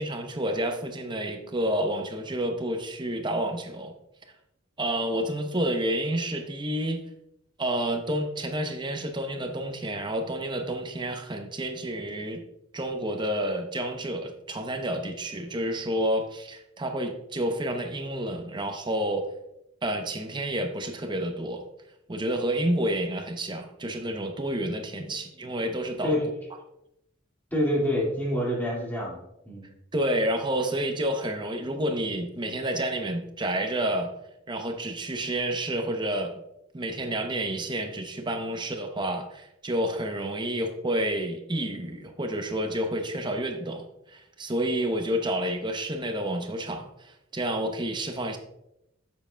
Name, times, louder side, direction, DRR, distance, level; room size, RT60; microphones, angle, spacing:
voice 1, 0.0-3.9 4.8-7.0 7.6-12.4 12.7-19.3 19.8-21.6 22.1-26.2 29.9-34.1 34.5-36.4 36.7-43.9 44.1-48.4, right 1 dB, 25° right, 5 dB, 0.7 m, -29 dB
voice 2, 27.5-29.2 29.5-29.7, left 1 dB, 10° left, -4 dB, 2.0 m, -27 dB
9.4 x 7.3 x 2.2 m, 0.84 s
head